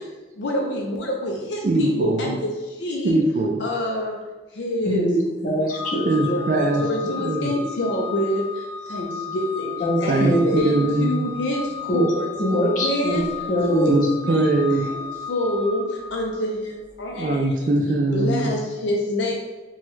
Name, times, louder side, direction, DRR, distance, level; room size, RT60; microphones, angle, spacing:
voice 1, 0.4-2.5 2.8-3.2 3.6-4.1 4.6-5.1 6.3-8.4 8.9-9.7 10.0-11.7 11.9-12.3 12.7-13.3 13.7-14.0 14.2-14.5 14.9-15.8 16.1-16.7 17.0-17.5 18.1-19.4, left 1 dB, 85° left, -1 dB, 0.4 m, -26 dB
voice 2, 1.6-2.4 3.0-3.6 6.0-7.5 10.1-11.3 13.9-14.9 17.2-18.5, right 2 dB, 45° right, 3 dB, 0.3 m, -21 dB
voice 3, 4.8-6.0 9.8-10.5 11.9-12.0 12.4-13.2 13.5-13.9, equal, 45° left, -3 dB, 0.7 m, -22 dB
Organ, 5.7-16.5, left 6 dB, 70° left, 1.0 m, -34 dB
3.0 x 2.2 x 3.1 m, 1.2 s
head